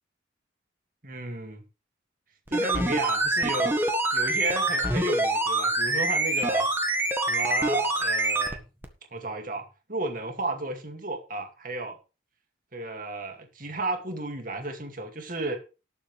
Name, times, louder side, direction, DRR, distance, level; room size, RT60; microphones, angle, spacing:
voice 1, 1.0-1.6 2.5-3.8 4.1-6.7 7.3-8.6 9.1-12.0 12.7-15.6, right 2 dB, 45° right, 4 dB, 2.4 m, -33 dB
sound 1, 2.5-8.6 8.8-8.9, right 2 dB, 10° right, 1.6 m, -25 dB
19.0 x 7.0 x 3.4 m, 0.32 s
head